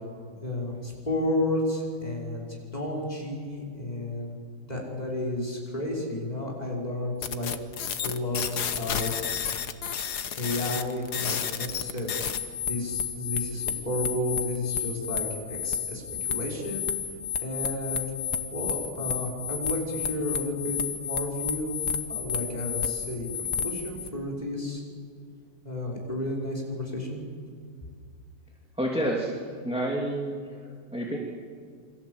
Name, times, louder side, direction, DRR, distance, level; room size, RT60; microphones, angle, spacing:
voice 1, 0.4-2.4 2.7-4.4 4.7-7.5 8.0-9.3 10.4-16.9 17.4-18.1 18.5-21.8 22.1-24.8 25.6-27.2, left 1 dB, 20° left, -3 dB, 5.7 m, -32 dB
sound 1, 7.2-24.1, left 7 dB, 70° left, 1.7 m, -31 dB
voice 2, 28.8-29.4 29.6-30.4 30.9-31.2, right 1 dB, 5° right, -2 dB, 2.7 m, -28 dB
28.0 x 24.0 x 8.1 m, 2.2 s
omnidirectional pair, 1.8 m